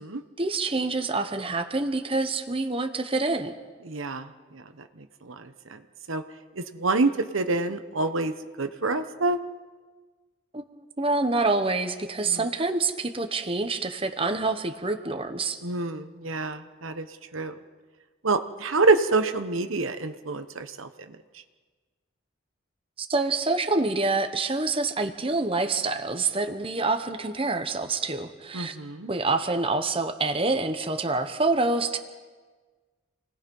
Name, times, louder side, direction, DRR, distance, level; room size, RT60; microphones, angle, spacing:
voice 1, 0.4-3.5 10.5-10.6 11.0-15.6 23.0-28.8 29.1-32.0, right 3 dB, 25° right, 7 dB, 1.1 m, -26 dB
voice 2, 3.8-4.3 4.5-4.6 5.2-5.8 6.1-6.2 6.6-9.4 12.3-12.4 15.6-17.1 17.3-17.5 18.2-20.9 28.5-29.1, right 3 dB, 85° right, 9 dB, 1.1 m, -27 dB
28.5 x 19.0 x 5.5 m, 1.4 s
head